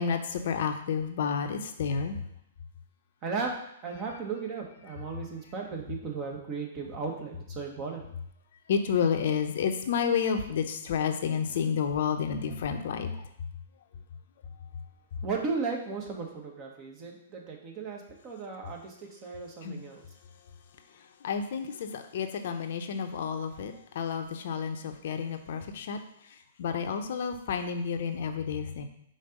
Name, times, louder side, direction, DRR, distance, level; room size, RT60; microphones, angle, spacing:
voice 1, 0.0-2.2 8.7-13.1 19.6-19.8 21.2-26.0 26.6-28.9, left 6 dB, 60° left, 6 dB, 0.7 m, -30 dB
voice 2, 3.2-8.0 15.2-20.0, right 4 dB, 35° right, 1 dB, 1.5 m, -36 dB
5.1 x 3.9 x 5.3 m, 0.75 s
hypercardioid pair, 120°, 0 cm